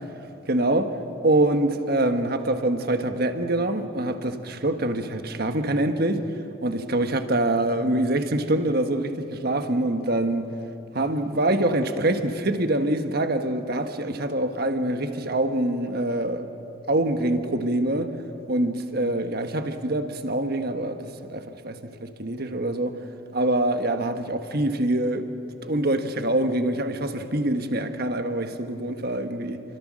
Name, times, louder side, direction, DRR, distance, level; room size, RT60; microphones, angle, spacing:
voice 1, 0.5-1.0 1.2-6.2 6.6-10.5 10.9-16.5 16.9-18.1 18.5-23.0 23.3-25.3 25.6-29.6, right 1 dB, 50° right, 1.4 m, -25 dB
30.0 x 24.0 x 6.4 m
head